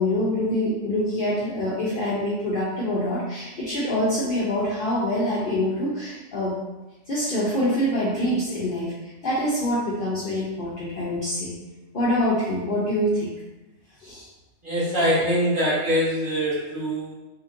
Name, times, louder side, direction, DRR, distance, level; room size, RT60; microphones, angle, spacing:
voice 1, 0.0-6.6 7.1-11.5 11.9-13.3 14.0-14.3, left 1 dB, 55° left, -8 dB, 0.6 m, -25 dB
voice 2, 14.6-17.1, equal, 40° right, -9 dB, 1.2 m, -23 dB
2.8 x 2.6 x 2.5 m, 1.1 s
omnidirectional pair, 1.4 m